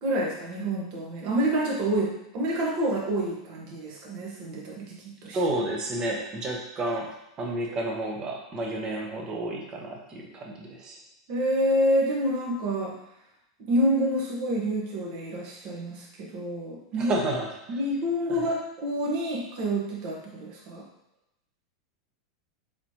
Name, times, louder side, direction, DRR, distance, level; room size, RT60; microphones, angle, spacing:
voice 1, 0.0-5.4 7.7-7.8 11.3-13.0 13.7-17.1 17.8-20.8, equal, 50° right, -2 dB, 1.4 m, -28 dB
voice 2, 5.3-7.1 7.4-11.0 17.0-17.8 18.4-18.5, right 2 dB, 35° right, 0 dB, 1.1 m, -31 dB
4.2 x 4.1 x 2.9 m, 0.83 s
hypercardioid pair, 95°, 2 cm